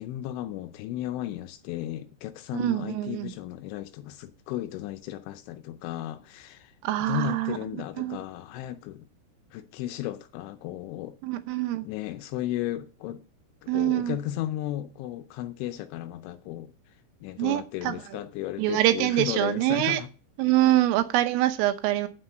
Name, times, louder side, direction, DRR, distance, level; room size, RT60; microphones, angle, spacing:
voice 1, 0.0-6.7 7.0-9.1 9.5-11.2 11.8-13.2 13.6-16.7 17.2-20.1 20.7-20.8, left 13 dB, 80° left, 2.9 m, -35 dB
voice 2, 2.5-3.3 6.8-7.6 8.0-8.2 11.2-11.9 13.7-14.2 17.4-18.0 18.6-20.0 20.4-22.1, right 15 dB, 80° right, 3.4 m, -25 dB
9.7 x 8.0 x 7.6 m
omnidirectional pair, 6.0 m